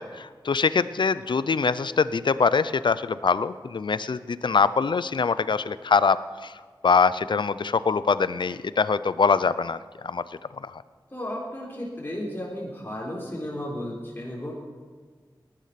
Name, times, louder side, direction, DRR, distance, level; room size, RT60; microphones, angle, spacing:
voice 1, 0.0-6.6 6.8-10.2 10.6-10.8, left 5 dB, 75° left, 16 dB, 0.5 m, -23 dB
voice 2, 11.1-14.5, left 1 dB, 25° left, -4 dB, 3.9 m, -34 dB
18.5 x 11.5 x 5.9 m, 1.5 s
wide cardioid pair, 65°, 8 cm